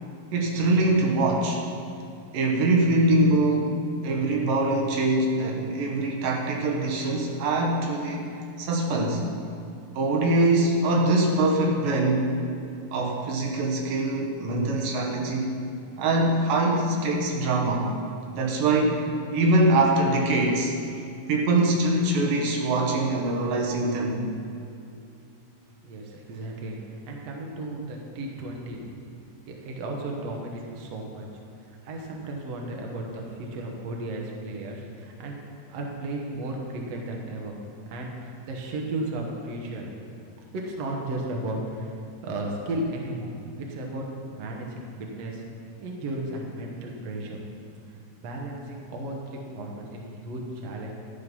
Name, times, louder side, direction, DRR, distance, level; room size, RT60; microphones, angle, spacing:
voice 1, 0.3-1.6 2.3-8.3 8.6-9.3 9.9-12.3 12.9-15.6 16.0-17.9 18.4-20.7 21.3-24.2, right 2 dB, 80° right, 0 dB, 2.9 m, -23 dB
voice 2, 25.8-28.8 29.5-31.3 31.6-35.4 35.7-37.6 37.9-39.9 40.5-45.4 45.8-47.4 47.9-50.9, right 1 dB, 60° right, 0 dB, 2.1 m, -34 dB
12.0 x 7.7 x 5.5 m, 2.5 s
omnidirectional pair, 3.8 m